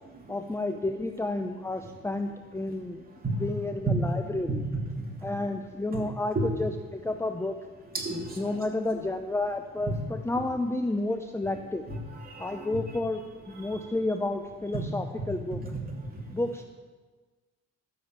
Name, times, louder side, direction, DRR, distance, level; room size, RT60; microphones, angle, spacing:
voice 1, 0.3-3.0 3.4-4.6 5.2-7.6 8.1-11.8 12.4-13.2 13.5-15.6 16.3-16.6, left 2 dB, 10° left, 6 dB, 0.6 m, -31 dB
voice 2, 3.1-3.5 4.5-4.6 4.9-5.3 5.9-6.1 6.3-6.4 7.9-8.6 9.9-10.0 11.9-13.0 13.5-13.9 14.7-14.8 15.6-16.4, right 2 dB, 30° right, -1 dB, 3.2 m, -34 dB
13.0 x 7.0 x 6.8 m, 1.3 s
cardioid pair, 90°, 30 cm